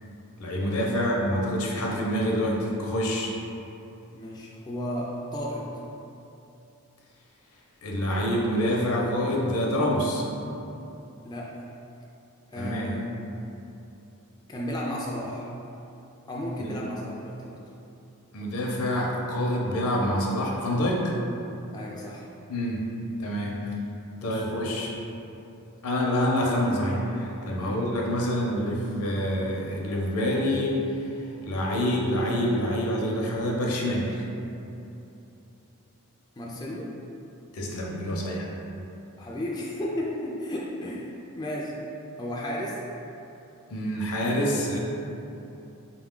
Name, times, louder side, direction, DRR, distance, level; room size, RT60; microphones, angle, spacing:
voice 1, 0.4-3.3 7.8-10.2 12.6-13.0 16.6-16.8 18.3-21.1 22.5-22.8 23.2-23.6 24.2-24.9 25.8-30.8 31.5-34.2 37.5-38.5 43.7-44.8, equal, 80° left, -2 dB, 0.6 m, -26 dB
voice 2, 4.1-5.7 11.2-11.5 12.5-13.1 14.5-15.4 16.3-17.6 21.7-22.3 24.2-24.5 27.6-27.8 36.4-36.9 39.2-41.7 42.2-42.8, left 1 dB, 20° left, -4 dB, 0.3 m, -33 dB
3.8 x 2.3 x 3.6 m, 2.8 s
head